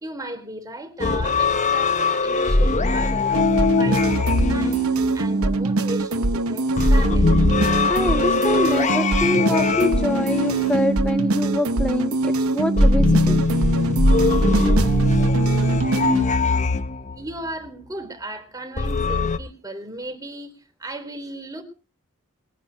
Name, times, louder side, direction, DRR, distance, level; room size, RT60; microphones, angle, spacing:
voice 1, 0.0-7.3 17.1-21.6, right 1 dB, 15° right, 3.5 m, -36 dB
sound 1, 1.0-5.6 6.8-11.5 12.8-17.4 18.8-19.4, left 2 dB, 35° left, 0.9 m, -21 dB
sound 2, 3.3-16.3, right 2 dB, 85° right, 1.0 m, -23 dB
voice 2, 7.9-13.5 15.3-15.4, left 1 dB, 5° left, 0.6 m, -25 dB
22.0 x 10.0 x 4.6 m
head